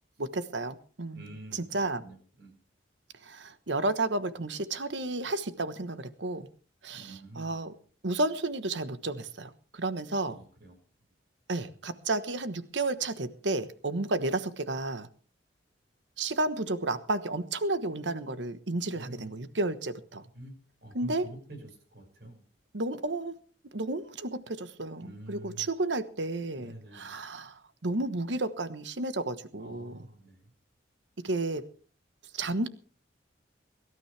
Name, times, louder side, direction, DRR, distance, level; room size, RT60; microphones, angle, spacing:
voice 1, 0.2-1.3 1.5-2.0 3.2-6.5 6.8-7.7 8.0-10.4 11.5-15.1 16.2-20.2 20.9-21.3 22.7-23.3 23.7-30.0 31.2-31.6 32.3-32.7, right 2 dB, 80° right, 12 dB, 1.2 m, -32 dB
voice 2, 1.1-2.5 6.9-7.6 10.2-10.8 18.9-19.3 20.3-20.5 20.8-22.4 25.0-25.7 26.6-27.1 29.6-30.5, right 1 dB, 60° right, 4 dB, 6.0 m, -47 dB
23.5 x 12.5 x 3.4 m, 0.40 s
head